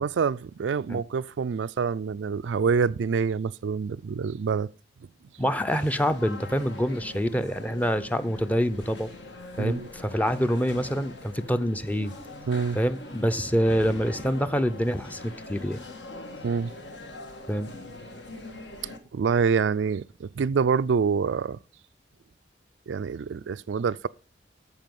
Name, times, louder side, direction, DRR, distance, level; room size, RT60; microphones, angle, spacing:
voice 1, 0.0-4.7 9.6-9.9 12.5-12.8 16.4-16.7 19.1-21.6 22.9-24.1, right 5 dB, 80° right, 0.4 m, -26 dB
sound 1, 5.3-19.0, left 2 dB, 70° left, 1.8 m, -43 dB
voice 2, 5.4-9.1 9.6-12.1 12.7-15.8 17.5-17.7, equal, 10° left, 0.6 m, -26 dB
14.0 x 4.9 x 5.3 m
head